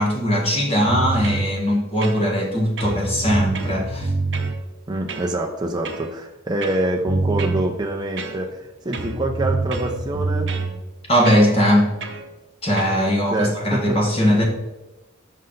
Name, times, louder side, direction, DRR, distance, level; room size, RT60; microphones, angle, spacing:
voice 1, 0.0-4.1 11.1-11.9 12.6-14.4, equal, 30° left, -1 dB, 1.4 m, -19 dB
sound 1, 0.9-1.5 2.0-2.5 2.8-4.6 5.1-5.3 5.8-6.1 6.6-7.7 8.2-8.6 8.9-10.7 11.2-11.5 12.0-12.2 12.8-13.0, right 3 dB, 55° right, 0.8 m, -26 dB
voice 2, 4.9-10.5 13.0-14.0, right 1 dB, 20° right, 1 dB, 0.4 m, -26 dB
5.5 x 5.3 x 3.8 m, 1.1 s
head